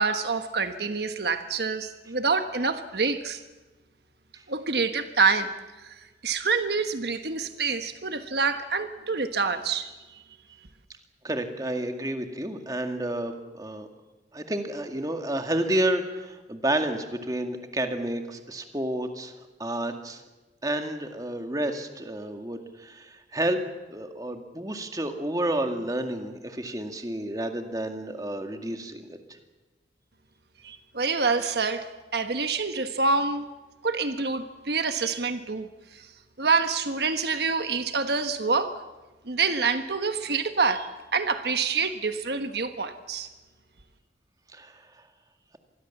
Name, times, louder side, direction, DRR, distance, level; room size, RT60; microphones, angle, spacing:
voice 1, 0.0-3.4 4.5-5.5 5.8-5.9 6.2-9.9 30.6-31.9 32.1-33.4 33.8-36.0 36.4-38.8 39.3-43.3, right 4 dB, 70° right, 8 dB, 1.3 m, -26 dB
voice 2, 11.2-13.9 14.3-19.3 19.6-20.2 20.6-23.6 23.9-29.2 44.5-44.8, right 1 dB, 20° right, 5 dB, 2.1 m, -30 dB
26.5 x 20.5 x 7.3 m, 1.2 s
head